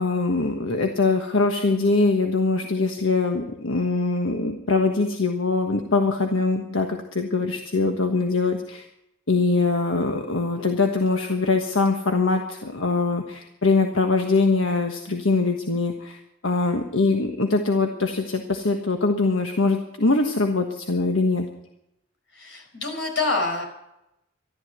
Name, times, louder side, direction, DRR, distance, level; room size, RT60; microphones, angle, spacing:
voice 1, 0.0-8.8 9.3-21.5, left 3 dB, 85° left, 4 dB, 1.4 m, -23 dB
voice 2, 22.3-23.6, left 3 dB, 60° left, 1 dB, 5.1 m, -26 dB
14.0 x 12.5 x 8.2 m, 0.84 s
head